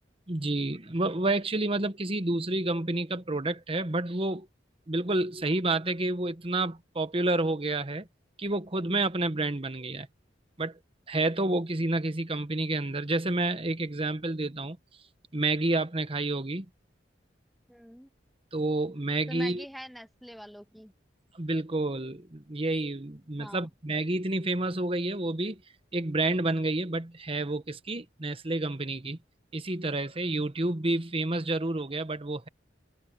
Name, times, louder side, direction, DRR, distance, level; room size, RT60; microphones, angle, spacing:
voice 1, 0.3-4.5 4.9-8.1 8.4-10.1 10.6-10.7 11.1-14.8 15.3-16.7 18.5-19.6 21.3-25.6 25.9-29.2 29.5-32.5, right 2 dB, 30° right, 1.2 m, -29 dB
voice 2, 17.7-18.1 19.3-20.9 23.4-23.7, equal, ahead, 1.2 m, -44 dB
head